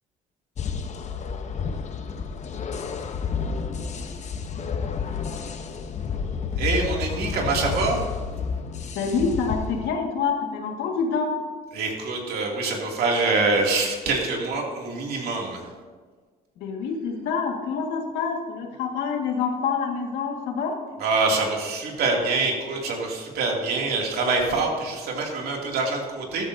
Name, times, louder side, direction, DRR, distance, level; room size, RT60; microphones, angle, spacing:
sound 1, 0.6-9.9, left 6 dB, 45° left, 1.0 m, -30 dB
voice 1, 6.6-8.0 11.7-15.6 21.0-26.5, right 3 dB, 65° right, -1 dB, 2.7 m, -25 dB
voice 2, 9.0-11.3 16.6-20.8, left 5 dB, 80° left, 2 dB, 1.9 m, -26 dB
13.5 x 13.0 x 2.8 m, 1.5 s
cardioid pair, 110°, 17 cm